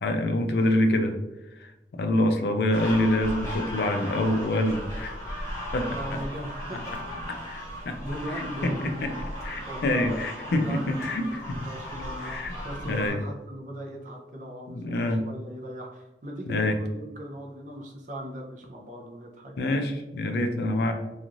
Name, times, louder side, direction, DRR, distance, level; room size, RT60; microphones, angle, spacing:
voice 1, 0.0-1.2 1.6-5.2 5.7-6.2 7.5-8.0 8.4-9.1 9.4-11.6 12.2-12.5 12.9-13.2 14.7-15.2 16.5-16.8 19.6-20.9, left 1 dB, 65° left, 6 dB, 0.4 m, -26 dB
sound 1, 2.7-13.1, equal, 15° left, 0.7 m, -36 dB
voice 2, 5.8-7.0 8.0-9.0 9.7-10.2 10.4-11.1 11.6-19.5 20.6-20.8, equal, 45° right, 0 dB, 0.5 m, -38 dB
3.0 x 2.4 x 2.5 m, 0.99 s
head